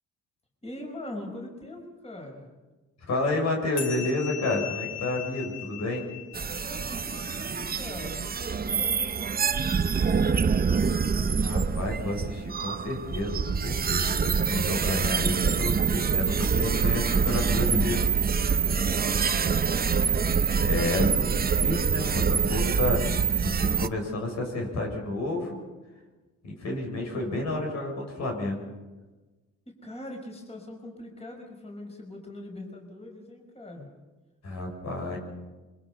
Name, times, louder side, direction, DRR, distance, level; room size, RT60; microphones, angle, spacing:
voice 1, 0.6-2.5 6.6-11.3 18.4-20.1 29.7-33.9, left 1 dB, 20° left, 1 dB, 5.6 m, -42 dB
voice 2, 3.1-6.0 11.4-18.0 20.6-23.0 23.4-25.6 26.4-28.6 34.4-35.2, left 2 dB, 60° left, 1 dB, 6.8 m, -30 dB
sound 1, 3.8-8.6, left 10 dB, 80° left, 4.1 m, -40 dB
sound 2, 6.3-23.9, right 6 dB, 30° right, 0.8 m, -25 dB
26.0 x 24.0 x 5.7 m, 1.2 s
cardioid pair, 90°, 30 cm